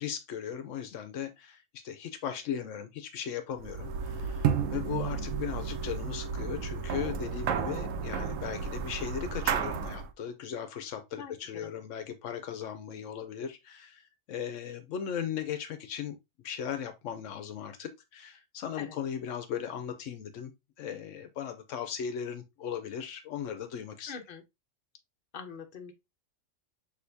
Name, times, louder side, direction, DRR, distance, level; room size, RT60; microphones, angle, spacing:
voice 1, 0.0-16.2 16.4-20.5 20.8-24.1, left 8 dB, 80° left, 1.0 m, -37 dB
sound 1, 3.6-10.1, right 7 dB, 80° right, 0.9 m, -32 dB
voice 2, 11.2-11.7 18.8-19.0 24.1-24.4 25.3-25.9, left 6 dB, 50° left, 0.9 m, -43 dB
6.4 x 2.8 x 2.6 m
omnidirectional pair, 1.3 m